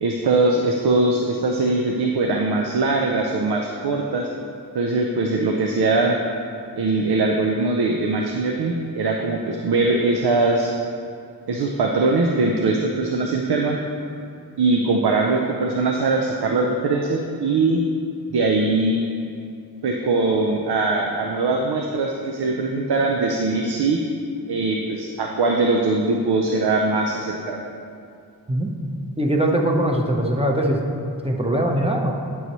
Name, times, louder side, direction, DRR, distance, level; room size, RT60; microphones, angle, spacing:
voice 1, 0.0-4.3 4.7-6.2 6.8-10.7 11.5-13.8 14.6-17.8 18.3-19.0 19.8-24.0 24.5-27.6, right 3 dB, 90° right, 1 dB, 0.6 m, -21 dB
voice 2, 29.2-30.8 31.2-32.1, right 1 dB, 15° right, 0 dB, 0.9 m, -21 dB
11.0 x 5.6 x 3.1 m, 2.4 s
cardioid pair, 50°, 38 cm